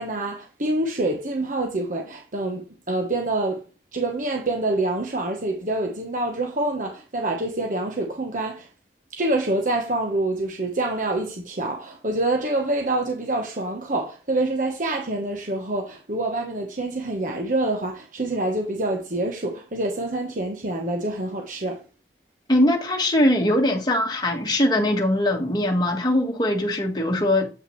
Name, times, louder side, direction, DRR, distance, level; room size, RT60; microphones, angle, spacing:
voice 1, 0.0-3.6 3.9-8.7 9.1-21.8, right 2 dB, 45° right, 1.1 m, -26 dB
voice 2, 22.5-27.5, left 1 dB, 25° left, 1.4 m, -21 dB
8.2 x 5.6 x 3.2 m
head